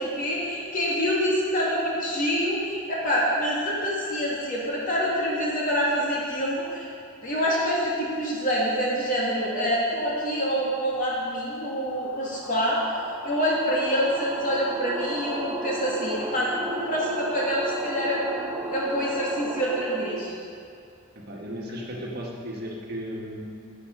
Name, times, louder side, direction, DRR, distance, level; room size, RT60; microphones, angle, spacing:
voice 1, 0.0-6.9 7.2-12.8 13.2-20.3, equal, 40° left, -5 dB, 2.3 m, -26 dB
sound 1, 12.1-20.4, right 1 dB, 15° right, 0.5 m, -35 dB
voice 2, 21.3-23.4, equal, 45° right, -2 dB, 1.5 m, -35 dB
11.0 x 7.1 x 5.4 m, 2.6 s
head